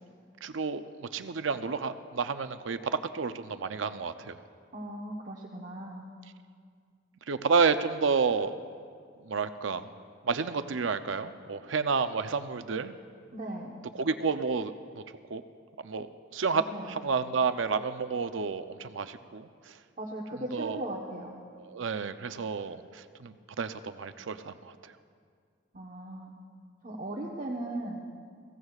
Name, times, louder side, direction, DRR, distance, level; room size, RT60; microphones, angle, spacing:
voice 1, 0.4-0.8 1.1-4.4 7.3-8.5 9.2-9.9 10.2-12.9 14.0-15.0 15.3-15.4 15.8-16.1 16.3-19.5 20.5-20.8 21.7-24.7, right 5 dB, 80° right, 10 dB, 0.6 m, -30 dB
voice 2, 4.7-6.1 13.3-13.8 16.5-17.0 20.0-21.3 25.7-26.3 26.8-28.0, right 1 dB, 45° right, -3 dB, 1.1 m, -38 dB
22.0 x 16.0 x 2.4 m, 2.1 s
head